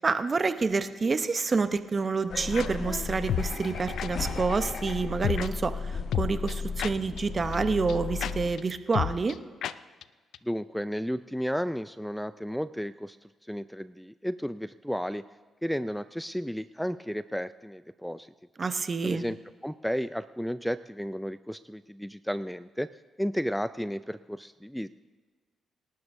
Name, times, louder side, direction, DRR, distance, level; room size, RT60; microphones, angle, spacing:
voice 1, 0.0-9.4 18.6-19.2, right 4 dB, 35° right, 10 dB, 0.8 m, -28 dB
sound 1, 2.3-8.5, left 5 dB, 60° left, 1.5 m, -35 dB
sound 2, 2.6-2.7 3.3-3.5 4.0-4.1 5.2-5.5 6.1-7.2 7.5-7.6 7.9-8.0 8.2-8.3 8.6-8.7 8.9-9.4 9.6-9.7 10.0-10.1 10.3-10.4, left 10 dB, 80° left, 0.4 m, -30 dB
voice 2, 10.4-15.2 15.6-18.3 19.0-19.4 19.6-22.9 23.2-24.9, equal, ahead, 14 dB, 0.3 m, -33 dB
25.5 x 12.5 x 2.7 m, 1.4 s
cardioid pair, 75°, 0 cm